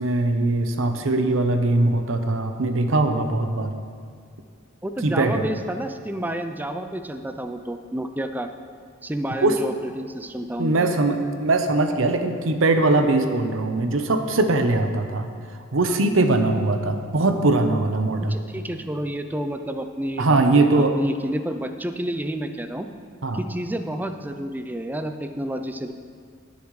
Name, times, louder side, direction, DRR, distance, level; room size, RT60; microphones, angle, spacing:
voice 1, 0.0-3.7 5.0-5.5 9.4-9.5 10.6-15.3 15.7-18.3 20.2-20.9 23.2-23.4, right 2 dB, 85° right, 7 dB, 0.8 m, -21 dB
voice 2, 4.8-8.5 9.0-10.9 18.2-20.7 20.9-22.9 23.3-25.9, right 1 dB, 10° right, 7 dB, 0.4 m, -30 dB
18.0 x 6.9 x 3.2 m, 2.1 s
head